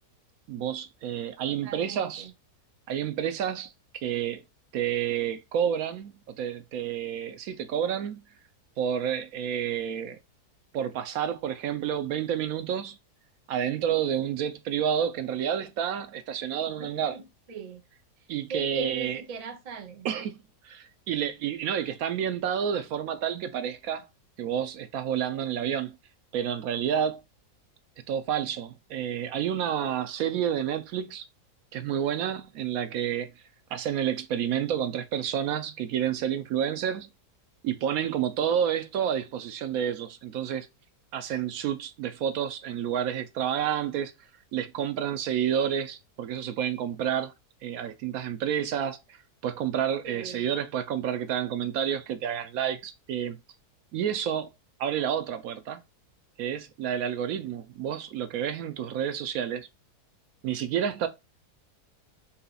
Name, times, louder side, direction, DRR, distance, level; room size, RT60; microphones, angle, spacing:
voice 1, 0.5-2.3 2.9-3.7 4.0-4.4 4.7-8.3 8.8-10.2 10.7-13.0 13.5-17.2 18.3-19.2 20.0-24.1 24.4-25.9 26.3-27.2 28.1-31.3 31.7-33.3 33.7-37.1 37.6-40.7 41.1-44.1 44.5-47.3 47.6-53.4 53.9-54.5 54.8-55.8 56.4-59.7 60.4-61.1, right 9 dB, 70° right, 1.0 m, -29 dB
voice 2, 1.4-2.3 16.8-17.2 17.5-17.8 18.5-20.1 50.0-50.5, right 5 dB, 85° right, 0.3 m, -39 dB
3.9 x 2.8 x 3.9 m
omnidirectional pair, 1.7 m